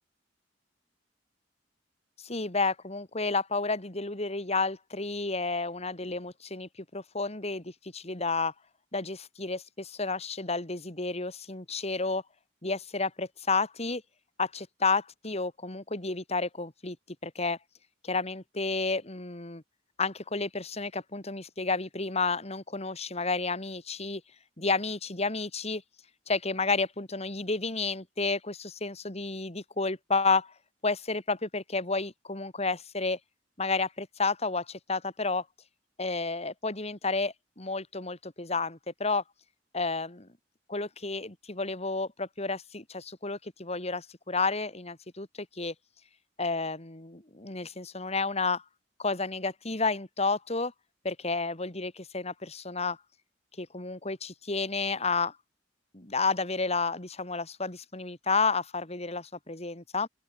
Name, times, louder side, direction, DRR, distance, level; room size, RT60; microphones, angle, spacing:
voice 1, 2.2-8.5 8.9-12.2 12.6-14.0 14.4-17.0 17.2-17.6 18.0-19.6 20.0-24.2 24.6-25.8 26.3-30.5 30.8-33.2 33.6-35.4 36.0-39.2 39.7-40.3 40.7-45.7 46.4-48.6 49.0-50.7 51.0-53.0 53.6-55.4 55.9-60.1, left 3 dB, 35° left, 3.3 m, -31 dB
open air
head